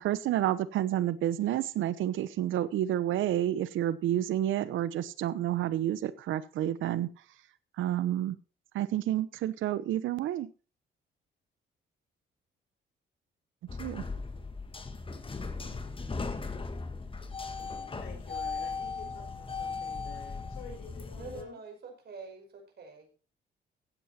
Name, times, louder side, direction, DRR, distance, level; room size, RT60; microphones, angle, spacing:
voice 1, 0.0-7.1 7.8-8.4 8.7-10.5 13.8-14.0, right 12 dB, 80° right, 16 dB, 1.0 m, -29 dB
sound 1, 13.7-21.4, left 4 dB, 25° left, 1.7 m, -37 dB
voice 2, 18.0-21.6, left 4 dB, 90° left, 3 dB, 5.5 m, -49 dB
voice 3, 21.2-23.2, right 4 dB, 55° right, 3 dB, 5.5 m, -46 dB
15.5 x 8.2 x 4.3 m, 0.34 s
cardioid pair, 90°, 20 cm